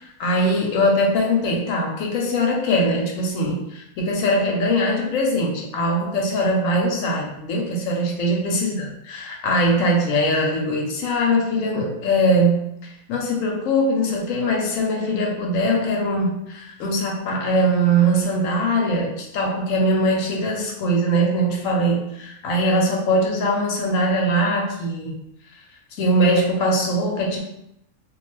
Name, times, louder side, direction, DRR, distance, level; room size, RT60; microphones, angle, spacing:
voice 1, 0.2-25.2 26.0-27.4, equal, 70° left, 0 dB, 0.9 m, -21 dB
2.3 x 2.2 x 3.0 m, 0.78 s
omnidirectional pair, 1.6 m